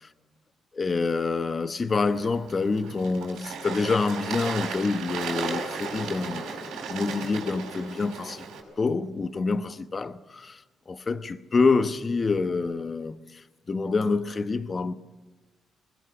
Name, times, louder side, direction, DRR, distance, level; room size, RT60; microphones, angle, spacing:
voice 1, 0.7-6.5 6.9-8.5 8.8-10.6 10.9-13.2 13.7-14.9, left 4 dB, 35° left, 0.9 m, -27 dB
Bird / Water, 1.9-8.6, right 4 dB, 85° right, 5.5 m, -35 dB
21.0 x 19.5 x 7.1 m
cardioid pair, 95°, 0 cm